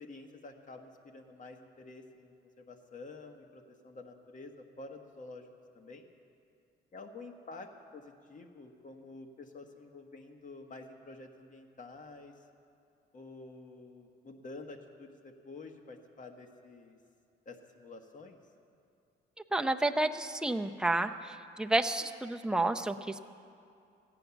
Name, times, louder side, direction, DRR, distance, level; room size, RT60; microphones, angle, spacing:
voice 1, 0.0-5.5 5.7-6.1 6.9-12.3 13.1-17.0 17.4-18.4, left 3 dB, 40° left, 4 dB, 1.4 m, -49 dB
voice 2, 19.5-23.2, right 2 dB, 5° right, 6 dB, 0.6 m, -30 dB
14.5 x 9.2 x 7.0 m, 2.5 s
cardioid pair, 90°, 20 cm